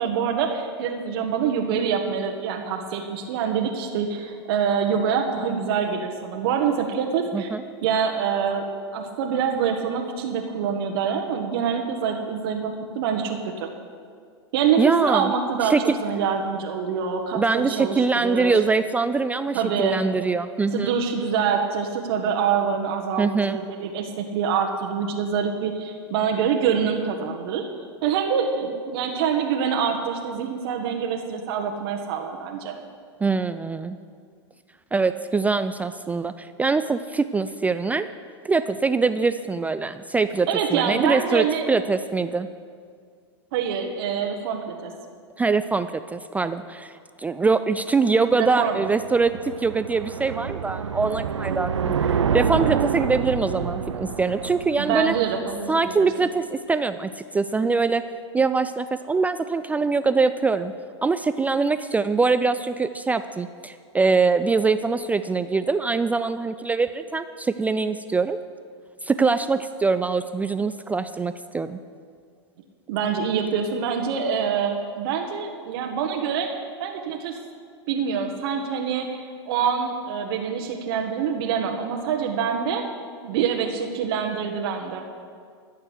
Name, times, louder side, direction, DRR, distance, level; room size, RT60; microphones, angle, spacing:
voice 1, 0.0-7.5 7.8-13.7 14.5-15.7 16.0-18.5 19.5-20.0 20.7-27.7 28.0-32.8 40.5-41.7 43.5-44.9 48.3-48.9 54.8-56.1 72.9-77.4 77.9-82.8 83.2-85.0, right 7 dB, 60° right, 2 dB, 1.2 m, -25 dB
voice 2, 14.8-15.3 15.6-16.0 17.3-20.9 23.2-23.6 33.2-34.0 34.9-38.1 38.4-42.5 45.4-55.1 55.7-58.0 58.3-60.7 61.0-68.4 69.0-71.8, right 4 dB, 10° right, 11 dB, 0.3 m, -23 dB
sound 1, 48.5-55.9, right 7 dB, 90° right, 0.6 m, -27 dB
13.5 x 6.6 x 8.1 m, 2.1 s
hypercardioid pair, 105°, 15 cm